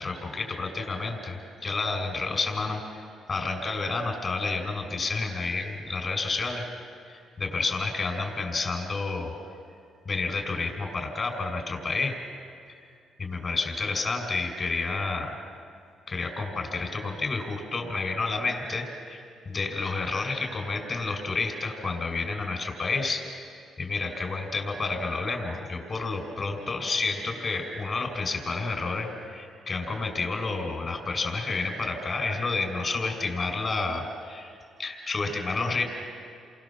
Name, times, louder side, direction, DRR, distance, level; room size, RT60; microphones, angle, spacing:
voice 1, 0.0-6.6 7.1-9.3 10.1-12.2 12.7-12.9 13.2-15.4 16.1-23.5 23.8-34.5 34.8-35.8, left 3 dB, 40° left, 4 dB, 5.7 m, -30 dB
30.0 x 23.5 x 7.3 m, 2.4 s
cardioid pair, 90°, 0 cm